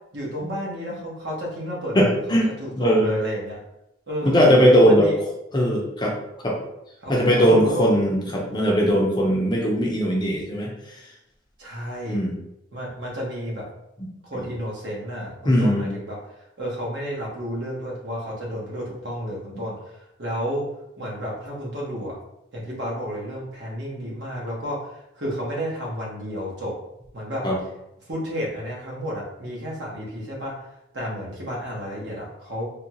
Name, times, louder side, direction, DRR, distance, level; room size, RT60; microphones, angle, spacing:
voice 1, 0.1-3.6 4.1-4.4 4.8-5.1 7.0-7.9 11.6-12.2 12.7-13.7 14.2-16.2 16.6-20.6 21.0-22.2 22.5-26.7 27.1-27.4 28.1-30.7 30.9-32.7, equal, 60° right, -4 dB, 1.1 m, -31 dB
voice 2, 1.9-3.1 4.2-5.1 5.5-6.1 6.4-6.6 7.1-11.0 12.1-12.3 15.4-15.9 27.4-27.6, equal, 20° left, -2 dB, 0.5 m, -19 dB
3.5 x 2.3 x 2.8 m, 0.84 s
head